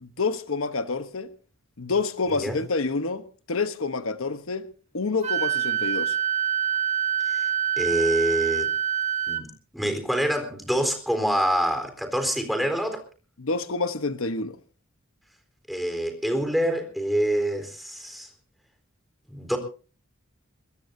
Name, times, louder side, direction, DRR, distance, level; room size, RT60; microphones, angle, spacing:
voice 1, 0.0-1.3 1.8-4.7 4.9-6.2 13.4-14.6, left 4 dB, 75° left, 1.1 m, -28 dB
Wind instrument woodwind instrument, 5.2-9.4, right 10 dB, 35° right, 2.0 m, -25 dB
voice 2, 7.8-8.7 9.3-13.0 15.7-18.3 19.3-19.6, equal, ahead, 3.9 m, -26 dB
23.0 x 20.5 x 2.7 m
head